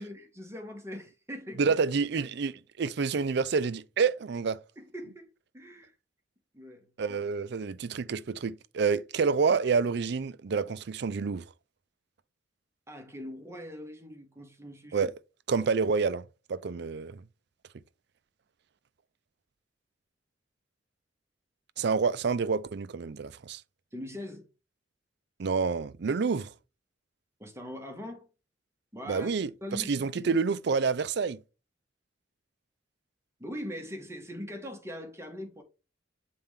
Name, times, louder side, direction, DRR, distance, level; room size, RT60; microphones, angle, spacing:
voice 1, 0.0-1.8 2.1-2.3 4.8-5.3 5.5-5.9 6.5-6.9 12.9-15.1 23.9-24.5 27.4-28.3 28.9-29.3 29.6-30.3 33.4-35.6, equal, 15° right, 1.5 m, -41 dB
voice 2, 1.6-2.5 2.8-4.6 7.0-11.4 14.9-15.1 15.5-17.2 21.8-23.6 25.4-26.5 29.1-31.4, right 5 dB, 65° right, 0.5 m, -28 dB
7.3 x 4.2 x 3.7 m
head